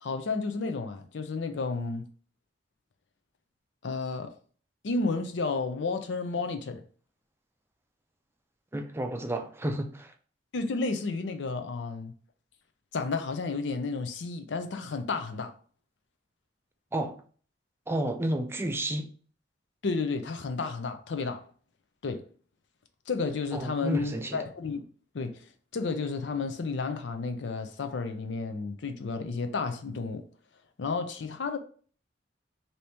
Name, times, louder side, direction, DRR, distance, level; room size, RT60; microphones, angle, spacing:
voice 1, 0.0-2.1 3.8-4.3 4.8-6.8 10.5-12.1 12.9-15.5 19.8-21.4 22.0-22.3 23.1-24.8 25.1-25.4 25.7-30.2 30.8-31.6, left 4 dB, 70° left, 0.5 m, -32 dB
voice 2, 8.7-10.1 16.9-17.2 17.9-19.1 23.5-24.4, right 1 dB, 15° right, 0.4 m, -31 dB
2.9 x 2.7 x 3.4 m
head